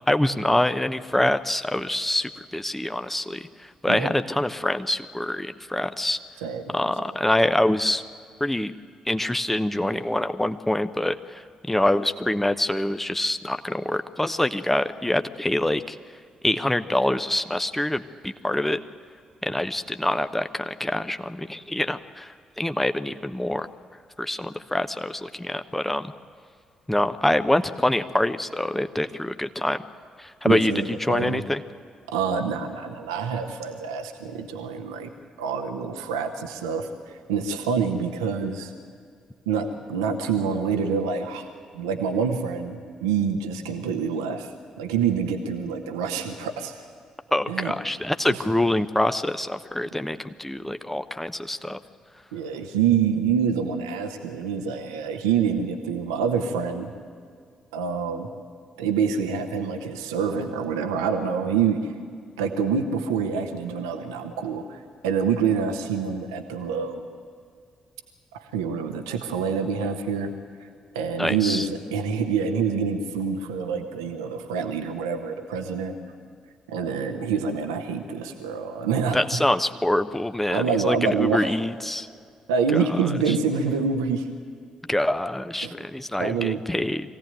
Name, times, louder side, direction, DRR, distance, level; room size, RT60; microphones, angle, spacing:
voice 1, 0.1-3.5 3.8-6.2 6.7-8.0 8.4-8.7 9.1-11.4 11.7-16.0 16.4-18.8 19.4-23.7 24.2-26.1 26.9-29.8 30.2-31.6 47.3-51.8 71.2-71.7 79.1-82.1 84.9-87.1, left 1 dB, 5° left, 9 dB, 0.9 m, -25 dB
voice 2, 30.4-31.4 32.1-35.1 35.4-38.7 39.5-41.5 41.7-46.9 47.5-47.7 48.3-48.5 52.3-56.9 57.7-58.3 58.8-61.9 62.4-67.1 68.3-70.3 70.6-70.7 70.9-75.9 76.7-79.4 80.5-81.5 82.5-84.3 85.6-85.7 86.2-86.6, right 6 dB, 75° right, 6 dB, 1.2 m, -26 dB
24.0 x 16.5 x 9.3 m, 2.2 s
figure-of-eight pair, 40°, 3 cm